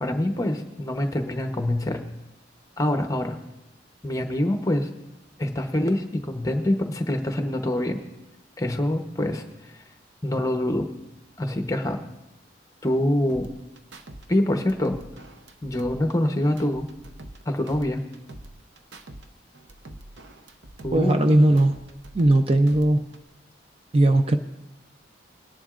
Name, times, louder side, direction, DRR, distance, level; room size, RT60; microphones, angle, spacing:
voice 1, 0.0-2.0 2.8-3.4 4.0-4.9 5.4-8.0 8.6-9.7 10.2-10.9 11.4-12.0 12.8-13.5 14.3-15.0 15.6-16.9 17.5-18.0 20.8-21.2, left 1 dB, 20° left, 5 dB, 0.8 m, -25 dB
sound 1, 13.3-14.3 14.5-17.4 17.7-19.3 19.5-22.4 22.7-23.3, right 1 dB, 70° right, 0.7 m, -45 dB
voice 2, 20.9-21.8 22.1-23.1 23.9-24.4, right 1 dB, 30° right, 7 dB, 0.4 m, -18 dB
20.5 x 10.5 x 2.5 m, 0.93 s
head